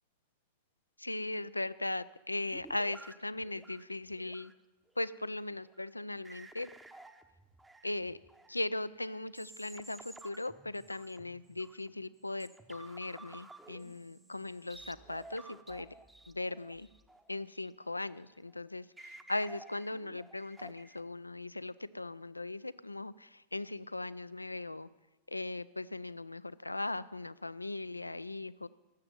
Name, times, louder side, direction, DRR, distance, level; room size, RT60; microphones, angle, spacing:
voice 1, 1.0-4.5 5.0-6.7 7.8-8.2 8.5-16.0 16.3-16.9 17.3-24.9 25.3-28.7, left 2 dB, 85° left, 17 dB, 0.3 m, -39 dB
sound 1, 2.5-4.5 4.9-5.2 5.6-5.9 6.2-8.6 9.0-11.9 12.3-18.1 18.5-18.6 19.0-21.0, right 2 dB, 10° right, 0.8 m, -54 dB
12.5 x 7.7 x 9.4 m, 1.1 s
figure-of-eight pair, 90°, 0 cm